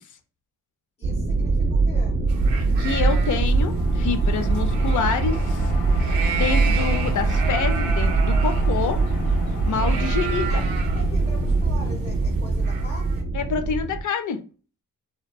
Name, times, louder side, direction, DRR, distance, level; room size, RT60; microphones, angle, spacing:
voice 1, 1.0-2.2 10.5-13.3, left 1 dB, 20° left, -2 dB, 0.7 m, -41 dB
sound 1, 1.0-14.0, right 3 dB, 35° right, 0.4 m, -22 dB
sound 2, 2.3-13.2, right 6 dB, 80° right, 0.6 m, -35 dB
sound 3, 2.6-12.1, left 4 dB, 80° left, 0.9 m, -41 dB
voice 2, 2.8-5.6 6.3-9.0 9.6-10.6 13.3-14.4, left 6 dB, 60° left, 8 dB, 0.5 m, -27 dB
2.7 x 2.2 x 2.2 m, 0.37 s
cardioid pair, 75°, 35 cm